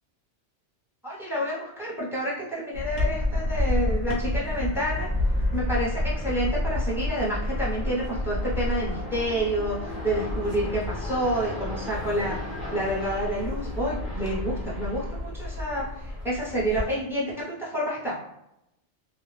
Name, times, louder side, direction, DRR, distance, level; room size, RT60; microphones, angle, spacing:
voice 1, 1.0-5.1 5.5-12.4 12.7-18.2, right 1 dB, ahead, -6 dB, 0.7 m, -29 dB
sound 1, 2.7-16.8, left 1 dB, 40° left, 0.9 m, -30 dB
2.4 x 2.0 x 3.2 m, 0.83 s
omnidirectional pair, 1.2 m